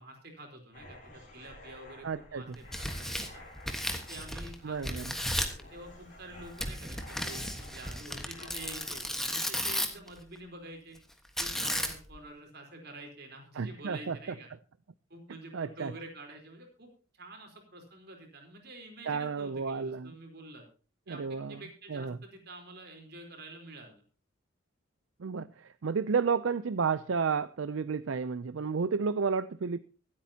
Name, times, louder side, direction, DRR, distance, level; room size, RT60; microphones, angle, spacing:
voice 1, 0.0-3.4 4.1-5.2 5.7-11.0 11.4-14.5 15.1-20.7 21.1-24.0, right 2 dB, 50° right, 3 dB, 3.9 m, -48 dB
sound 1, 0.7-9.2, left 1 dB, 40° left, 5.1 m, -52 dB
voice 2, 2.0-2.6 4.6-5.0 13.6-14.2 15.5-15.9 19.1-20.1 21.1-21.6 21.9-22.2 25.2-29.8, right 5 dB, 70° right, 14 dB, 0.5 m, -31 dB
Tearing, 2.5-4.5 4.8-5.6 6.6-10.1 11.4-12.2, equal, ahead, 1.3 m, -34 dB
24.5 x 8.7 x 2.8 m, 0.36 s
head